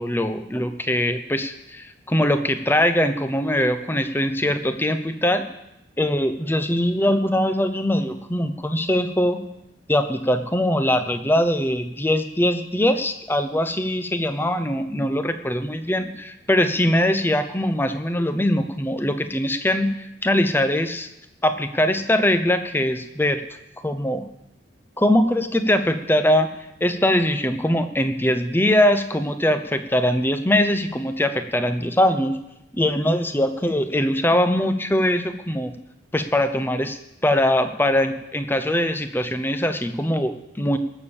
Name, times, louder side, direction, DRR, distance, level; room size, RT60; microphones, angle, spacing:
voice 1, 0.0-5.4 6.0-9.4 9.9-21.1 21.4-23.4 23.8-24.2 25.0-26.5 26.8-32.4 32.8-35.7 36.1-40.8, left 1 dB, 10° left, 9 dB, 0.7 m, -22 dB
18.0 x 7.1 x 7.1 m, 0.88 s
head